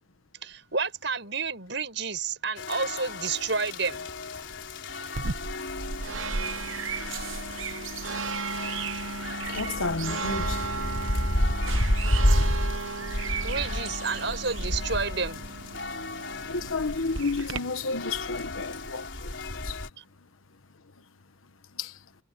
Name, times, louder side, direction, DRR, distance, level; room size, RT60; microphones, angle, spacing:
voice 1, 0.4-4.1 13.4-15.4, right 4 dB, 60° right, 7.6 m, -30 dB
sound 1, 2.6-19.9, left 1 dB, 65° left, 4.3 m, -31 dB
sound 2, 5.1-17.6, right 4 dB, 75° right, 1.1 m, -35 dB
voice 2, 9.6-10.6 16.5-19.1, left 3 dB, 85° left, 1.2 m, -30 dB
head